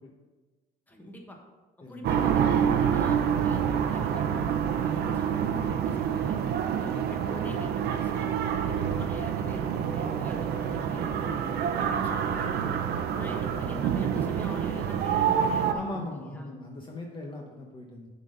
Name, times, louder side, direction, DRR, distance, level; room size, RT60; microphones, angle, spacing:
voice 1, 0.9-1.4 1.8-6.4 6.8-8.3 8.6-11.4 11.8-12.8 13.2-16.5, equal, 10° left, 1 dB, 1.3 m, -44 dB
voice 2, 1.8-2.1 8.7-9.0 13.2-13.5 15.7-18.1, left 2 dB, 30° left, 0 dB, 1.0 m, -40 dB
sound 1, 2.0-15.7, right 8 dB, 70° right, 0.7 m, -27 dB
7.0 x 4.0 x 6.5 m, 1.2 s
cardioid pair, 110°, 17 cm